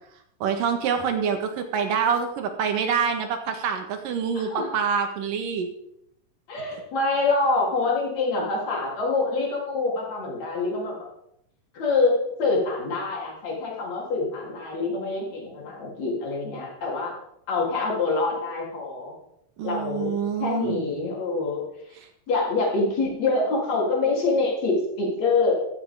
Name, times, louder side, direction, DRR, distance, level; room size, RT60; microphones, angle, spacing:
voice 1, 0.4-5.7 19.6-20.8, right 6 dB, 75° right, 6 dB, 3.2 m, -26 dB
voice 2, 6.5-11.1 11.7-12.1 12.4-17.1 17.5-19.1 19.6-20.1 20.4-21.9 22.3-25.5, left 3 dB, 50° left, -3 dB, 4.8 m, -25 dB
14.0 x 14.0 x 3.7 m, 0.75 s
omnidirectional pair, 3.9 m